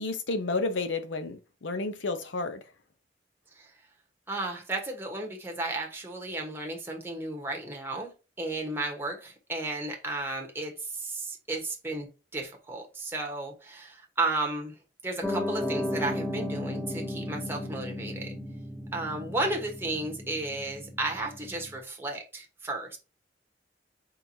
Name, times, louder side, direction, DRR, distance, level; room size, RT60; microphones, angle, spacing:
voice 1, 0.0-2.6, left 3 dB, 85° left, 0.7 m, -31 dB
voice 2, 4.3-8.1 8.4-14.7 15.0-18.3 18.9-23.0, right 2 dB, 15° right, 1.1 m, -33 dB
Piano, 15.2-21.8, left 1 dB, 5° left, 0.7 m, -35 dB
4.5 x 3.9 x 2.7 m
head